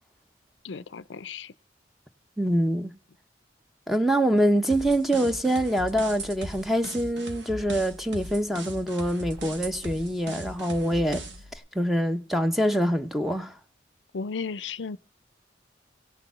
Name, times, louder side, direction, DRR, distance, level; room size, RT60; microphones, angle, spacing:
voice 1, 0.6-1.5 14.1-15.0, left 5 dB, 80° left, 0.5 m, -34 dB
voice 2, 2.4-2.9 3.9-11.2 11.7-13.5, equal, ahead, 0.9 m, -25 dB
sound 1, 4.7-11.5, right 1 dB, 75° right, 1.9 m, -39 dB
17.0 x 6.9 x 6.8 m
head